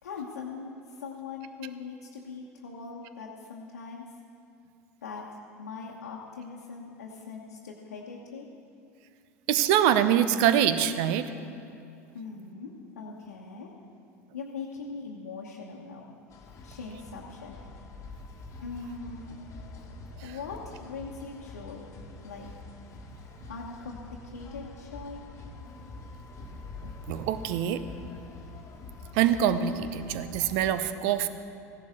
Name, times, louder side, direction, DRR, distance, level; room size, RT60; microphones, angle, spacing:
voice 1, 0.0-4.1 5.0-8.5 12.1-13.7 14.3-16.0 16.6-17.6 18.6-19.3 20.2-21.9 22.2-22.5 23.5-25.2, left 4 dB, 75° left, -3 dB, 1.1 m, -41 dB
voice 2, 9.5-11.3 20.2-20.4 26.8-27.8 29.1-31.3, right 10 dB, 55° right, 12 dB, 0.7 m, -25 dB
sound 1, 16.3-30.7, left 3 dB, 35° left, 1.5 m, -45 dB
15.5 x 11.5 x 3.7 m, 2.6 s
figure-of-eight pair, 75°, 9 cm